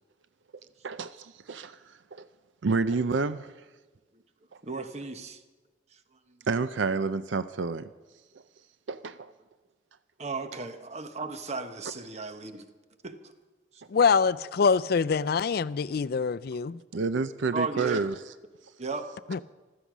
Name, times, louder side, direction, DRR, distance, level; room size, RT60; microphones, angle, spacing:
voice 1, 0.8-2.3 2.6-3.5 6.5-7.9 8.9-9.3 16.9-18.3, right 4 dB, 80° right, 0.5 m, -29 dB
voice 2, 4.6-5.4 10.2-12.6 13.0-13.1 17.5-18.0 18.8-19.1, right 3 dB, 35° right, 1.1 m, -35 dB
voice 3, 13.9-16.8 19.3-19.4, left 5 dB, 55° left, 0.4 m, -24 dB
15.5 x 13.5 x 6.1 m
head